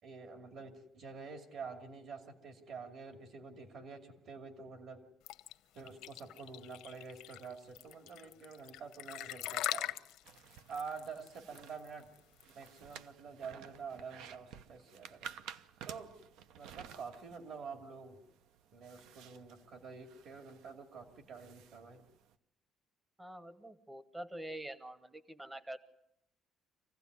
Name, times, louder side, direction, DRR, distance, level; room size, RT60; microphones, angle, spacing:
voice 1, 0.0-5.0 5.7-9.9 10.7-12.1 12.5-15.3 15.8-16.1 16.6-18.2 18.7-22.0, right 5 dB, 55° right, 5 dB, 2.6 m, -47 dB
sound 1, 5.3-12.9, left 15 dB, 80° left, 0.8 m, -42 dB
sound 2, 10.2-22.4, right 8 dB, 80° right, 0.9 m, -54 dB
voice 2, 23.2-25.8, right 1 dB, 10° right, 14 dB, 0.8 m, -46 dB
26.0 x 16.0 x 9.5 m, 0.81 s
cardioid pair, 180°, 0 cm